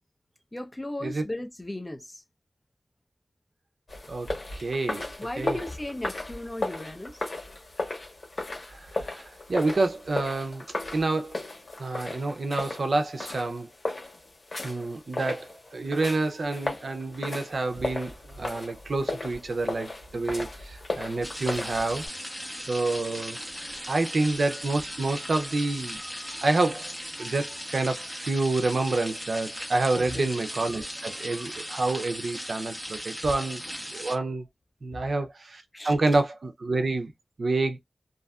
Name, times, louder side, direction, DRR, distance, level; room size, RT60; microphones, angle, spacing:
voice 1, 0.5-2.2 5.2-7.3 29.9-30.3 35.7-36.1, left 1 dB, 25° left, 0.7 m, -36 dB
sound 1, 3.9-22.1, left 2 dB, 65° left, 1.1 m, -36 dB
voice 2, 4.1-5.1 5.4-5.6 8.7-10.7 10.9-11.5 11.8-13.7 14.6-22.0 22.7-26.0 26.4-26.9 27.2-33.6 33.9-34.5 34.8-37.1 37.4-37.8, right 2 dB, 80° right, 0.5 m, -28 dB
sound 2, 21.2-34.2, equal, ahead, 1.2 m, -38 dB
2.6 x 2.3 x 2.2 m
cardioid pair, 50°, 0 cm